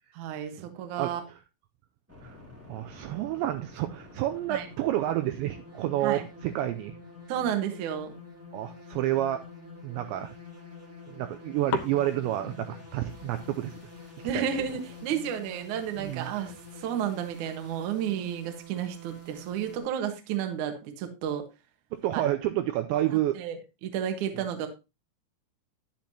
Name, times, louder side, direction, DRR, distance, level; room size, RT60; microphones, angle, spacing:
voice 1, 0.2-1.2 4.5-4.7 6.0-6.2 7.3-8.2 14.2-21.4 22.1-22.2 23.1-23.6 23.8-24.7, right 9 dB, 65° right, 5 dB, 1.9 m, -32 dB
sound 1, 2.1-19.8, left 2 dB, 20° right, 0.4 m, -47 dB
voice 2, 2.7-7.0 8.5-9.4 9.8-10.4 11.1-13.8 14.3-14.5 16.0-16.4 21.9-23.4, right 13 dB, 85° right, 7 dB, 2.6 m, -29 dB
sound 2, 7.7-9.9 10.5-11.4 11.7-17.2, left 11 dB, 75° left, 2.7 m, -43 dB
10.5 x 10.5 x 2.8 m, 0.27 s
omnidirectional pair, 5.7 m